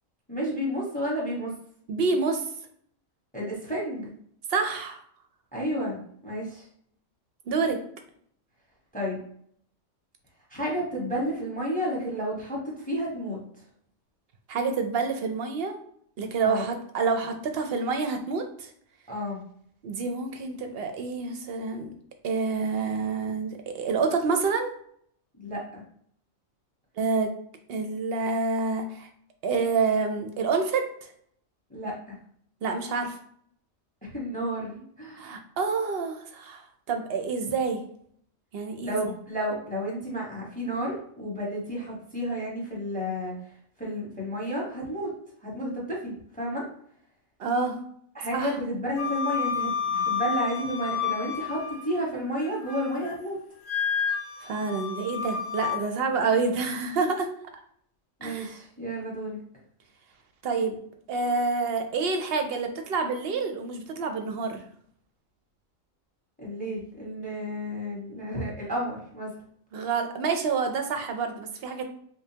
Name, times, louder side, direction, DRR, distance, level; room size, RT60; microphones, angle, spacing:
voice 1, 0.3-1.5 3.3-4.1 5.5-6.7 8.9-9.2 10.5-13.4 16.4-16.6 19.1-19.4 25.4-25.8 31.7-32.1 34.0-35.3 38.8-43.5 43.8-45.1 45.4-46.7 48.1-53.4 58.2-59.4 66.4-69.3, equal, 5° left, -4 dB, 1.0 m, -31 dB
voice 2, 1.9-2.4 4.5-5.0 7.5-7.8 14.5-15.8 16.2-18.7 19.8-21.9 22.2-24.7 27.0-27.3 27.7-29.1 29.4-30.9 32.6-33.2 35.2-36.6 36.9-37.8 38.5-39.0 47.4-47.8 48.3-48.5 54.4-57.3 58.2-58.6 60.4-60.8 61.1-64.6 69.7-71.8, right 4 dB, 60° right, 5 dB, 0.7 m, -28 dB
Wind instrument woodwind instrument, 49.0-52.0 52.4-53.1 53.6-55.8, left 7 dB, 65° left, 1.2 m, -30 dB
5.1 x 2.1 x 2.8 m, 0.65 s
omnidirectional pair, 1.4 m